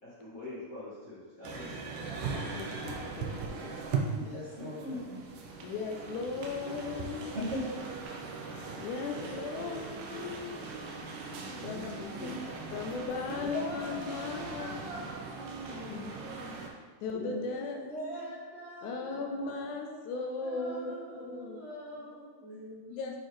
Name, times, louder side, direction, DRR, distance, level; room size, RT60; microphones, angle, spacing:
voice 1, 0.0-1.9 8.6-8.8 11.2-11.7 17.1-17.6 19.0-19.1 19.4-19.5, left 2 dB, 50° left, -10 dB, 1.0 m, -46 dB
sound 1, 1.4-16.7, right 4 dB, 90° right, 2.2 m, -39 dB
voice 2, 2.5-3.8 5.6-7.3 8.8-10.6 11.6-14.8 15.9-16.3 17.0-17.8 18.8-21.7 23.0-23.2, left 4 dB, 80° left, 2 dB, 2.0 m, -38 dB
voice 3, 4.1-5.2 7.3-7.6 12.2-12.5 13.3-15.2 17.2-19.2 19.5-19.6 20.4-22.4 22.9-23.2, equal, 75° right, -9 dB, 0.6 m, -41 dB
voice 4, 9.1-9.9 11.6-12.5 13.3-14.5 15.3-16.6 17.1-18.3 19.1-20.0 20.5-21.6 22.4-22.8, right 1 dB, 55° right, -9 dB, 1.1 m, -45 dB
8.6 x 3.8 x 3.2 m, 1.4 s
omnidirectional pair, 3.6 m